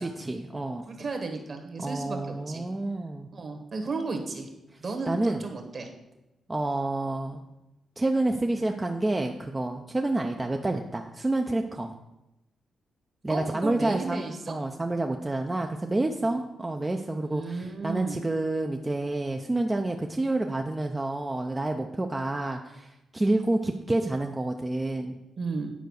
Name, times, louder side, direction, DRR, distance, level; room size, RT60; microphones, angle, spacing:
voice 1, 0.0-0.9 1.8-3.3 5.1-5.5 6.5-7.4 8.0-11.9 13.2-25.1, right 2 dB, 20° right, 3 dB, 0.6 m, -29 dB
voice 2, 0.7-2.6 3.3-4.5 4.8-5.9 13.3-14.6 16.2-16.4 17.3-18.2 25.4-25.7, right 3 dB, 45° right, 4 dB, 1.6 m, -34 dB
9.2 x 4.6 x 6.4 m, 0.94 s
cardioid pair, 100°, 0 cm